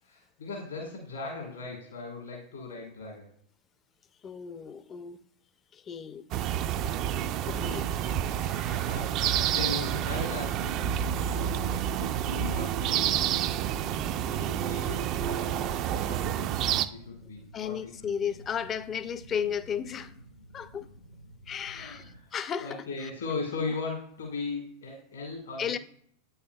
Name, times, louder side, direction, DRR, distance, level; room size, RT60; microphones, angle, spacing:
voice 1, 0.0-3.3 6.8-7.1 8.8-11.0 11.3-13.9 14.2-15.7 16.0-16.5 16.9-17.9 21.7-22.3 22.6-25.8, left 3 dB, 70° left, 1.5 m, -38 dB
voice 2, 4.2-5.2 5.7-6.3 7.4-7.9 8.3-8.9 14.0-14.2 17.5-20.1 20.5-20.9 21.5-23.1 25.6-25.8, left 8 dB, 25° left, 0.4 m, -35 dB
sound 1, 6.3-16.9, right 10 dB, 40° right, 0.3 m, -29 dB
sound 2, 9.5-22.2, right 1 dB, 80° right, 0.6 m, -51 dB
8.5 x 5.6 x 2.2 m
figure-of-eight pair, 90°, 0 cm